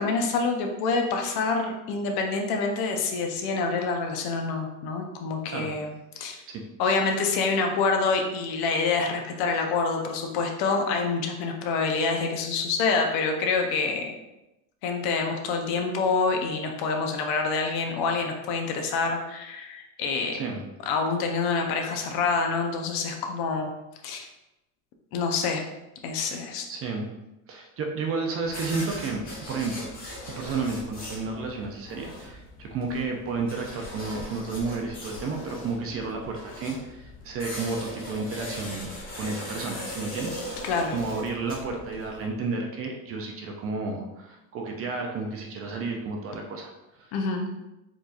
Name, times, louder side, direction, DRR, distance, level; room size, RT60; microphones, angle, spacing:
voice 1, 0.0-6.4 6.8-14.2 14.8-20.4 20.9-23.7 24.0-24.3 25.1-25.7 26.0-26.7 40.6-40.9 47.1-47.5, left 4 dB, 60° left, 3 dB, 0.7 m, -27 dB
voice 2, 26.7-27.1 27.5-29.9 30.3-47.1, right 4 dB, 35° right, 1 dB, 0.5 m, -32 dB
sound 1, 28.4-42.3, left 1 dB, 20° left, 1.2 m, -40 dB
4.5 x 2.7 x 2.4 m, 0.94 s
supercardioid pair, 125°, 43 cm